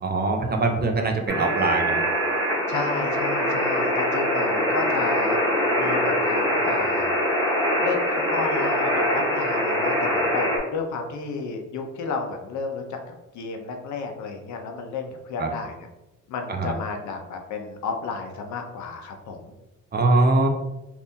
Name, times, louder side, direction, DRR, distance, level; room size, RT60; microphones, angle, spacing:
voice 1, 0.0-2.1 15.4-15.5 16.5-16.7 19.9-20.5, right 2 dB, 35° right, 3 dB, 0.6 m, -22 dB
sound 1, 1.3-10.6, equal, 10° left, 1.2 m, -23 dB
voice 2, 2.7-7.1 7.8-15.9 16.3-19.5, left 4 dB, 70° left, 4 dB, 0.7 m, -32 dB
3.5 x 2.6 x 2.7 m, 0.97 s
cardioid pair, 90°, 30 cm